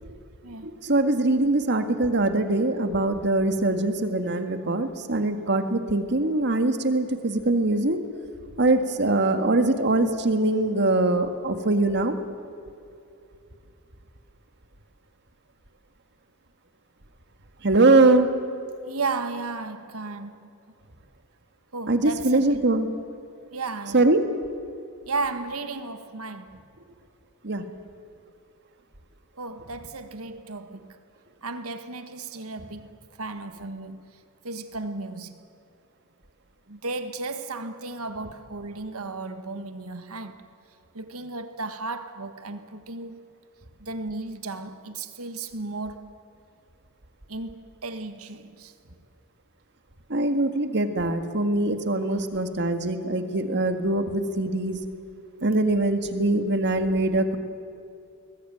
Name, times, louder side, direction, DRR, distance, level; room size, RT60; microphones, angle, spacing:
voice 1, 0.6-8.0 8.6-12.1 17.6-18.3 21.9-22.9 23.9-24.2 27.4-27.6 50.1-54.8 55.4-57.4, right 2 dB, 55° right, 1.8 m, -22 dB
voice 2, 18.9-20.5 21.7-22.7 23.5-24.1 25.0-26.6 29.4-31.0 31.4-34.1 34.4-35.3 36.7-40.5 40.9-43.2 43.8-46.1 47.3-48.7 52.0-52.2, right 3 dB, 80° right, 1.6 m, -34 dB
21.5 x 20.0 x 9.2 m
head